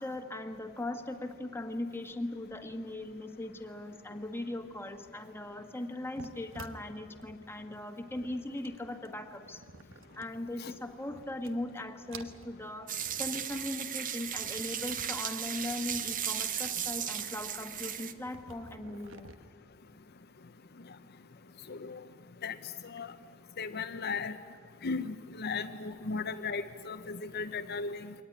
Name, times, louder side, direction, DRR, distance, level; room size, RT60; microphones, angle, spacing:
voice 1, 0.0-9.6 10.2-12.9 13.2-19.3, left 1 dB, 10° left, 6 dB, 1.5 m, -39 dB
sound 1, 6.0-10.8 11.1-11.8 12.1-13.7 14.0-19.3, right 4 dB, 70° right, 1.3 m, -52 dB
sound 2, 12.9-18.1, right 9 dB, 40° right, 1.0 m, -36 dB
voice 2, 21.7-22.0 22.4-22.6 22.8-23.1 23.6-24.4 24.8-28.1, left 4 dB, 50° left, 8 dB, 0.7 m, -36 dB
23.5 x 18.5 x 10.0 m, 2.1 s
head